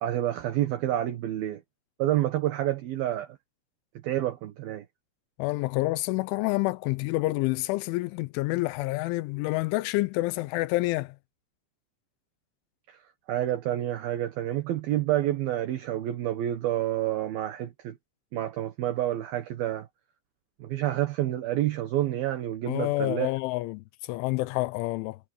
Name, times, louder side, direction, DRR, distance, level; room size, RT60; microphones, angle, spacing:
voice 1, 0.0-1.6 2.0-3.3 4.0-4.8 12.9-13.0 13.3-18.0 18.3-19.9 20.6-23.3, right 13 dB, 70° right, 2.4 m, -28 dB
voice 2, 5.4-11.1 22.7-25.2, left 20 dB, 85° left, 2.8 m, -28 dB
omnidirectional pair, 6.0 m